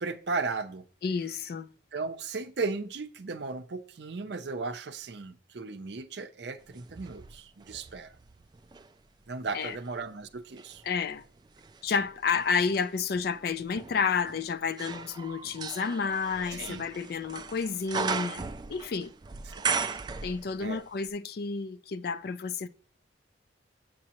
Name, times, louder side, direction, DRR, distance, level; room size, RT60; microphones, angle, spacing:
voice 1, 0.0-0.8 1.9-8.1 9.3-10.8 16.5-16.8 19.5-19.6 20.6-20.8, right 4 dB, 65° right, 0.6 m, -36 dB
voice 2, 1.0-1.7 9.5-9.8 10.8-11.2 11.8-18.4 18.7-19.1 20.2-22.7, left 5 dB, 55° left, 0.4 m, -30 dB
sound 1, 6.7-8.9 9.4-20.8 21.1-21.2, right 5 dB, 25° right, 0.3 m, -38 dB
7.5 x 7.3 x 2.9 m
head